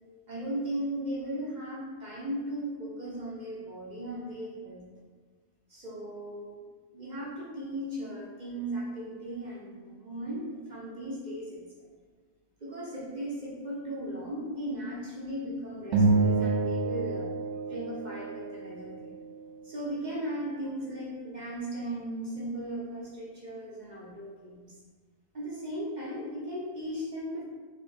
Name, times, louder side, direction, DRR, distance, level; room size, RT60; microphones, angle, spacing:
voice 1, 0.3-4.9 5.7-6.6 6.9-11.7 12.6-17.3 17.7-19.1 19.6-24.8 25.3-27.4, right 1 dB, 35° right, -5 dB, 0.8 m, -37 dB
sound 1, 15.9-18.5, right 3 dB, 60° right, 0.9 m, -27 dB
4.7 x 3.0 x 3.4 m, 1.4 s
omnidirectional pair, 1.6 m